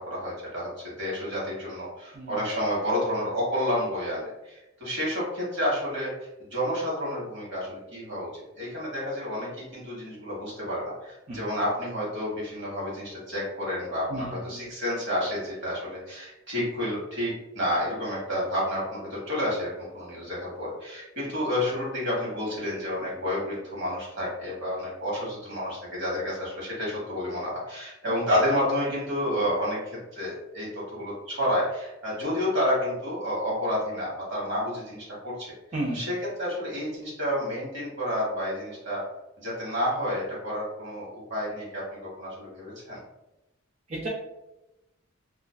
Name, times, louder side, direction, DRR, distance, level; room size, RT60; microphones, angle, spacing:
voice 1, 0.0-6.1 6.5-8.3 8.5-35.5 35.9-39.0 39.4-43.0, equal, 60° right, -5 dB, 1.2 m, -30 dB
voice 2, 14.1-14.6 35.7-36.1 43.9-44.1, right 2 dB, 30° right, -5 dB, 0.3 m, -33 dB
2.4 x 2.3 x 2.2 m, 0.95 s
head